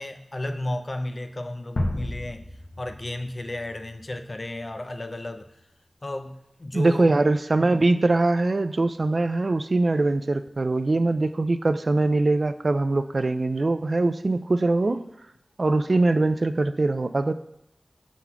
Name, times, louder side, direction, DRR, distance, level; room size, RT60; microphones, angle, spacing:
voice 1, 0.0-2.4 2.8-5.5 6.0-7.1, left 1 dB, 45° left, 8 dB, 0.5 m, -33 dB
sound 1, 1.8-4.7, left 1 dB, 75° left, 0.8 m, -33 dB
voice 2, 6.7-15.0 15.6-17.3, right 2 dB, 60° right, 11 dB, 0.3 m, -22 dB
6.0 x 3.9 x 5.6 m, 0.80 s
wide cardioid pair, 55°, 0 cm